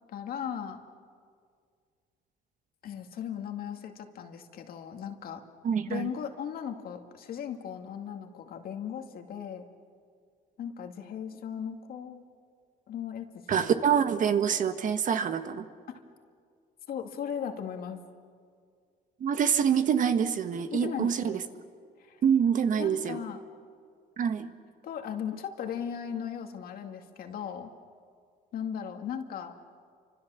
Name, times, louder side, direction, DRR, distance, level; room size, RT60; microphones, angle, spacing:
voice 1, 0.1-0.8 2.8-5.4 5.9-9.7 10.6-12.2 12.9-13.3 15.9-16.0 16.9-18.0 20.7-21.4 22.0-22.2 22.8-23.4 24.8-27.7 28.5-29.5, left 8 dB, 60° left, 5 dB, 2.2 m, -37 dB
voice 2, 5.6-6.1 13.5-15.7 19.2-21.4 22.2-23.2 24.2-24.5, right 7 dB, 50° right, 9 dB, 1.4 m, -26 dB
30.0 x 25.5 x 7.1 m, 2.1 s
cardioid pair, 110°, 17 cm